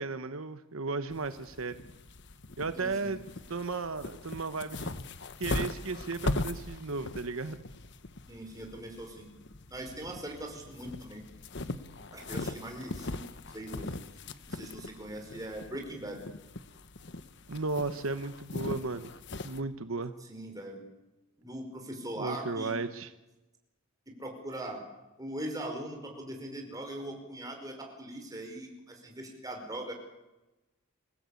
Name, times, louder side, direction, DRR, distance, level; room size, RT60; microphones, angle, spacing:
voice 1, 0.0-1.8 2.6-3.2 3.5-5.0 5.4-7.6 17.5-19.1 19.4-20.1 22.2-23.1, right 3 dB, 75° right, 10 dB, 1.0 m, -35 dB
sound 1, 1.1-19.6, left 2 dB, 55° left, 1.1 m, -40 dB
voice 2, 2.7-3.2 8.3-9.3 9.7-11.2 12.1-14.0 14.5-16.2 20.3-20.8 21.4-22.7 24.1-24.8 25.2-29.9, right 1 dB, 15° right, 2 dB, 5.0 m, -41 dB
26.5 x 16.5 x 8.4 m, 1.0 s
head